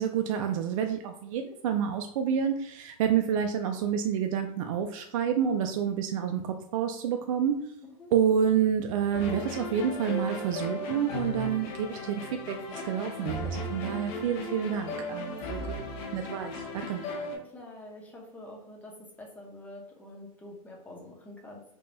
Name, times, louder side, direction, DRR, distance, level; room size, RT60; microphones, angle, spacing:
voice 1, 0.0-7.6 8.1-15.7 16.1-17.0, right 8 dB, 65° right, 6 dB, 0.4 m, -28 dB
sound 1, 9.1-17.4, left 1 dB, 45° left, 0.8 m, -36 dB
voice 2, 15.2-16.0 17.0-21.6, left 1 dB, 10° left, -1 dB, 0.8 m, -47 dB
3.5 x 2.2 x 3.8 m, 0.74 s
supercardioid pair, 135°, 18 cm